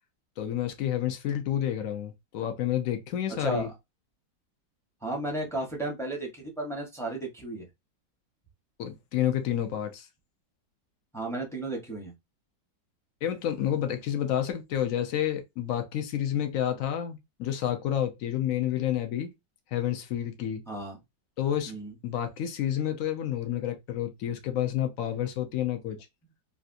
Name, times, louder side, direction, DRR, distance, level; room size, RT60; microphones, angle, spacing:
voice 1, 0.4-3.7 8.8-10.1 13.2-19.3 19.7-20.6 21.4-21.8 22.0-26.0, left 11 dB, 65° left, 0.8 m, -29 dB
voice 2, 3.4-3.7 5.0-7.7 11.1-12.1 20.7-21.0 21.7-21.9, right 2 dB, 5° left, 0.5 m, -34 dB
3.2 x 2.5 x 2.5 m
omnidirectional pair, 2.0 m